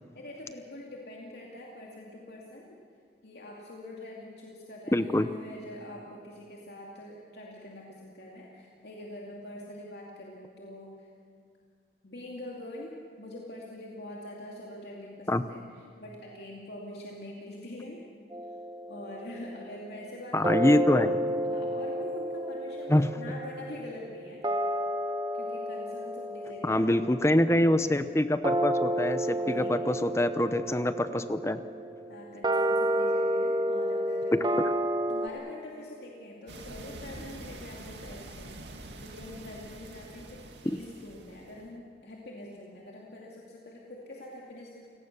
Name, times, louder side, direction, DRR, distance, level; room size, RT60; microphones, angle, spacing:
voice 1, 0.1-2.8 3.2-11.1 12.0-18.0 18.9-20.8 21.4-24.4 25.3-27.0 29.2-29.8 32.1-34.4 35.1-44.9, left 1 dB, 70° left, -3 dB, 2.5 m, -44 dB
voice 2, 4.9-5.3 15.3-15.4 20.3-21.2 22.9-23.1 26.6-31.6, left 1 dB, 15° left, 11 dB, 0.7 m, -25 dB
sound 1, 18.3-19.7 20.4-35.3, right 1 dB, 25° right, 0.9 m, -31 dB
sound 2, 36.5-41.7, right 2 dB, 80° right, 2.2 m, -45 dB
29.5 x 17.5 x 6.8 m, 2.1 s
head